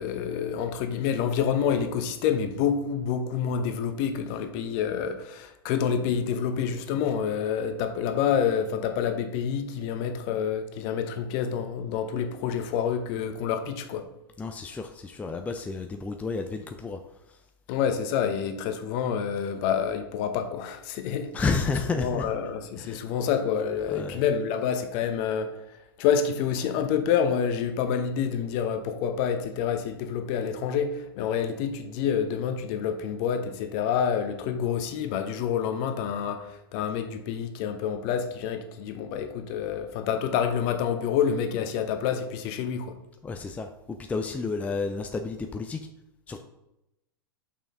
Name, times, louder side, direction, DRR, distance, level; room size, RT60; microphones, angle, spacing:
voice 1, 0.0-14.0 17.7-21.3 21.9-25.6 26.0-42.9, left 7 dB, 45° left, 1.0 m, -28 dB
voice 2, 14.4-17.0 21.3-22.3 22.8-23.0 23.9-24.2 43.2-45.9 46.3-46.4, left 4 dB, 10° left, 0.5 m, -31 dB
6.6 x 5.6 x 3.7 m
hypercardioid pair, 100°, 13 cm